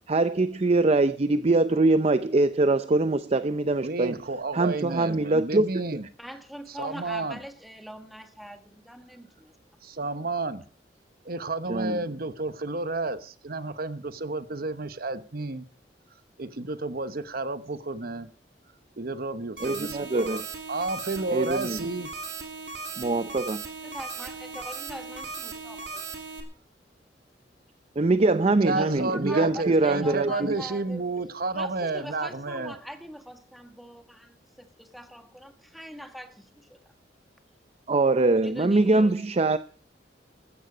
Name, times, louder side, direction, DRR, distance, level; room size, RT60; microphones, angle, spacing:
voice 1, 0.1-4.1 4.5-5.7 11.7-12.0 19.6-20.4 21.3-21.8 23.0-23.6 28.0-30.3 37.9-39.6, right 2 dB, 35° right, 0.6 m, -23 dB
voice 2, 3.8-6.0 6.7-7.4 9.8-10.7 11.2-15.6 16.4-18.3 19.0-20.4 20.7-22.1 28.6-32.8, right 3 dB, 55° right, 1.0 m, -31 dB
voice 3, 6.2-9.5 10.0-10.2 23.8-26.0 28.7-31.1 31.5-36.8 38.4-39.2, equal, ahead, 1.5 m, -42 dB
sound 1, 19.6-26.4, right 4 dB, 80° right, 3.1 m, -38 dB
15.5 x 13.5 x 5.0 m
head